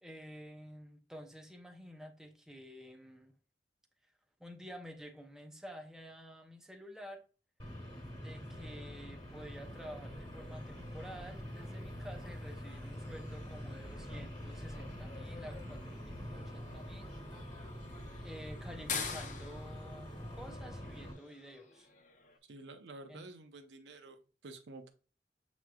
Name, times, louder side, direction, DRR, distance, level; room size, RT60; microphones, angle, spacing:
voice 1, 0.0-3.3 4.4-7.2 8.2-17.1 18.2-21.9 23.1-23.3, equal, 5° right, 0.5 m, -50 dB
sound 1, 7.6-21.1, equal, 25° left, 1.4 m, -45 dB
sound 2, 10.4-22.4, left 6 dB, 45° left, 0.7 m, -48 dB
voice 2, 22.5-24.9, right 2 dB, 80° right, 0.7 m, -50 dB
7.1 x 3.1 x 2.2 m
head